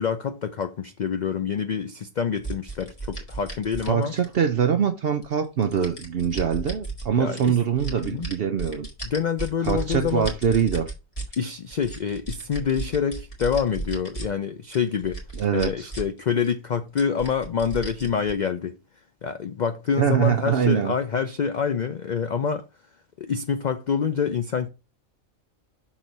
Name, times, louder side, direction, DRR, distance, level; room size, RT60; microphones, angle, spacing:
voice 1, 0.0-4.1 7.1-7.6 8.0-8.3 9.0-10.3 11.4-15.2 15.5-18.8 19.2-22.7 23.2-24.7, left 7 dB, 70° left, 0.4 m, -26 dB
sound 1, 2.4-4.6 5.2-7.1 7.4-11.4 11.7-14.3 14.7-16.2 16.4-16.5 17.0-18.3, right 3 dB, 25° left, 2.0 m, -34 dB
voice 2, 3.9-8.9 9.6-10.9 15.4-15.9 20.0-20.9, right 8 dB, 60° right, 0.7 m, -23 dB
6.2 x 3.8 x 5.2 m
omnidirectional pair, 1.4 m